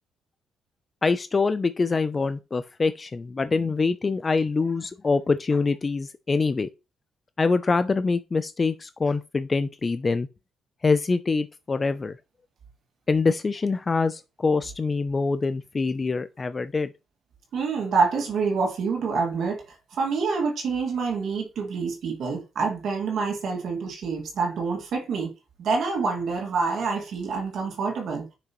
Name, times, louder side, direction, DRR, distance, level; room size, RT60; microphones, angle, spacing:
voice 1, 1.0-6.7 7.4-10.3 10.8-12.2 13.1-16.9, left 4 dB, 30° left, 0.4 m, -24 dB
voice 2, 17.5-25.3 25.6-28.3, right 4 dB, 65° right, 2.1 m, -27 dB
6.6 x 6.0 x 3.0 m
cardioid pair, 90°, 0 cm